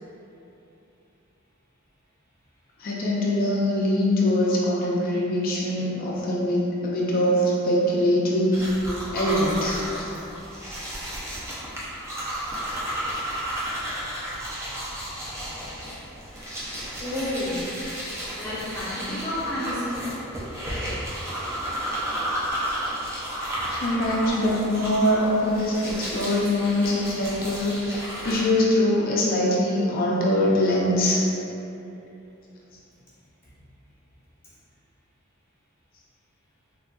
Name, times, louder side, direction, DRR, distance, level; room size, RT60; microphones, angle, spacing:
voice 1, 2.8-8.7 9.1-10.1 23.7-31.3, left 1 dB, 45° left, -4 dB, 0.4 m, -23 dB
sound 1, 8.5-28.4, equal, 15° right, 0.5 m, -32 dB
voice 2, 17.0-17.6 18.4-20.0, left 1 dB, 10° left, -12 dB, 0.8 m, -30 dB
3.4 x 2.5 x 2.2 m, 2.9 s
head